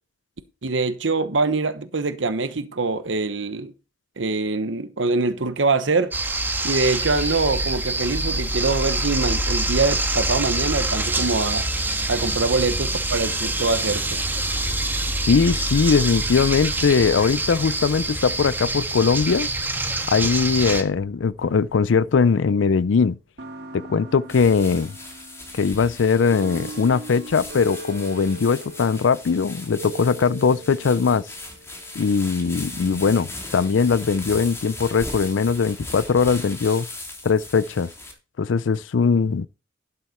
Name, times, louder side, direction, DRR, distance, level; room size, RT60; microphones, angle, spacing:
voice 1, 0.6-3.7 4.2-6.1 6.6-11.7 12.1-14.2, right 3 dB, 85° right, 1.0 m, -24 dB
sound 1, 6.1-20.8, right 2 dB, 10° right, 1.6 m, -25 dB
voice 2, 15.3-19.5 20.1-23.2 23.7-24.9 25.5-31.2 32.0-36.9 37.2-37.9 38.4-39.5, left 5 dB, 80° left, 0.5 m, -20 dB
sound 2, 20.2-22.8 23.4-33.8, right 2 dB, 60° right, 1.9 m, -42 dB
sound 3, 24.3-38.1, left 2 dB, 15° left, 3.3 m, -38 dB
12.0 x 7.6 x 4.3 m
head